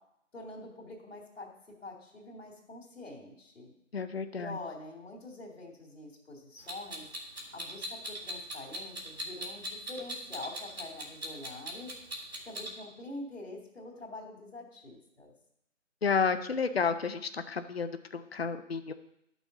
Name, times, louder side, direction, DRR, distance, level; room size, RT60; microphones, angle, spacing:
voice 1, 0.3-1.5 1.8-3.7 4.3-7.1 7.5-12.0 12.4-15.3, left 2 dB, 70° left, -6 dB, 2.4 m, -45 dB
voice 2, 3.9-4.6 16.0-18.9, left 5 dB, 50° left, 10 dB, 0.6 m, -31 dB
Clock, 6.7-12.7, equal, 50° right, 1.9 m, -39 dB
11.5 x 6.2 x 3.9 m, 0.77 s
figure-of-eight pair, 180°, 38 cm